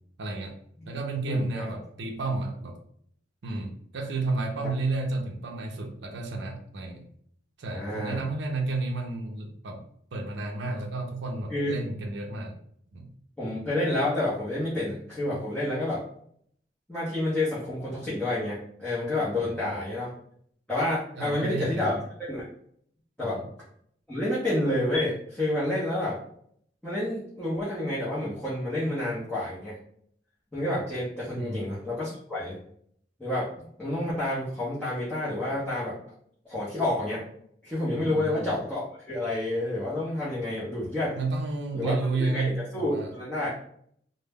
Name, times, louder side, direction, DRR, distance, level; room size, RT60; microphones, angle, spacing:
voice 1, 0.2-0.5 0.8-2.8 3.4-7.1 7.6-9.8 10.1-12.6 12.9-13.1 19.4-19.9 21.2-22.0 23.2-23.5 31.3-31.8 37.9-38.5 41.2-43.1, right 3 dB, 65° right, 3 dB, 0.5 m, -32 dB
voice 2, 1.2-1.7 7.7-8.2 11.5-11.8 13.4-16.0 16.9-20.1 20.7-22.0 22.3-22.5 23.2-23.4 24.1-26.2 26.8-29.7 30.5-32.6 33.2-33.5 33.8-36.0 36.4-37.2 37.6-41.1 41.7-43.5, left 1 dB, 5° left, -10 dB, 0.6 m, -29 dB
2.2 x 2.0 x 3.4 m, 0.65 s
head